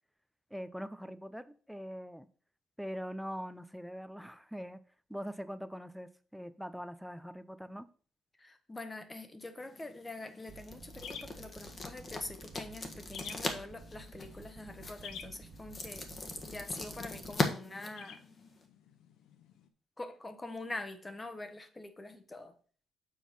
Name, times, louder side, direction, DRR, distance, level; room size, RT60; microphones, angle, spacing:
voice 1, 0.5-2.3 2.8-4.8 5.1-7.9, equal, ahead, 0.6 m, -42 dB
voice 2, 8.4-18.2 20.0-22.5, left 2 dB, 15° left, 1.1 m, -45 dB
sound 1, 9.6-18.7, left 3 dB, 35° left, 1.3 m, -40 dB
sound 2, 10.4-19.7, left 7 dB, 85° left, 0.9 m, -53 dB
sound 3, 10.5-17.3, right 3 dB, 35° right, 1.0 m, -53 dB
7.2 x 4.6 x 5.5 m
cardioid pair, 125°, 0 cm